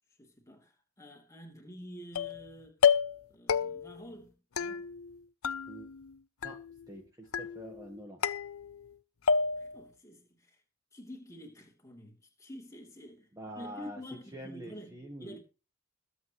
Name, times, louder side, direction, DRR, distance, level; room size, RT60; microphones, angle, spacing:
voice 1, 0.2-2.8 3.3-4.9 9.5-10.6 10.9-13.3 13.5-15.4, equal, 15° left, 3.1 m, -49 dB
sound 1, 2.2-2.5 2.8-3.2 3.5-4.0 4.6-5.2 5.4-6.1 6.4-7.0 7.3-7.9 8.2-8.9 9.3-9.8, left 6 dB, 65° left, 0.6 m, -30 dB
voice 2, 6.9-8.2 13.3-14.0 14.3-15.4, right 1 dB, 15° right, 1.4 m, -45 dB
22.0 x 8.5 x 3.1 m
head